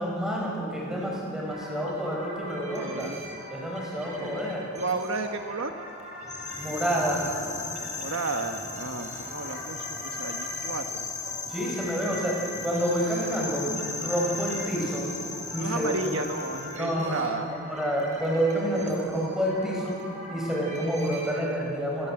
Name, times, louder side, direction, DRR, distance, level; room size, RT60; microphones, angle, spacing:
voice 1, 0.0-3.1 3.5-4.7 6.6-7.3 11.5-15.1 15.5-15.9 16.7-17.2 17.5-20.0 20.3-22.1, equal, 5° right, -3 dB, 6.2 m, -28 dB
sound 1, 1.4-21.3, equal, 30° right, 6.0 m, -43 dB
voice 2, 2.8-3.2 4.2-4.4 4.8-5.8 7.9-11.1 15.6-17.5 18.8-19.0, right 3 dB, 60° right, 5 dB, 1.2 m, -33 dB
sound 2, 6.2-16.8, left 4 dB, 15° left, 1.4 m, -36 dB
30.0 x 20.0 x 7.9 m, 2.7 s
head